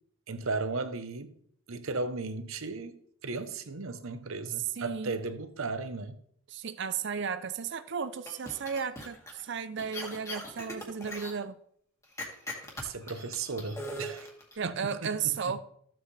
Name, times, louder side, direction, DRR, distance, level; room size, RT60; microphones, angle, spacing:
voice 1, 0.3-1.3 1.7-6.2 12.8-14.3 14.6-15.6, right 3 dB, 80° right, 0.9 m, -36 dB
voice 2, 4.8-5.2 6.5-11.6 14.6-15.6, right 6 dB, 55° right, 0.5 m, -34 dB
sound 1, 8.3-9.4 9.8-11.3 12.2-14.6, left 1 dB, 15° left, 1.9 m, -40 dB
14.0 x 7.6 x 3.3 m
head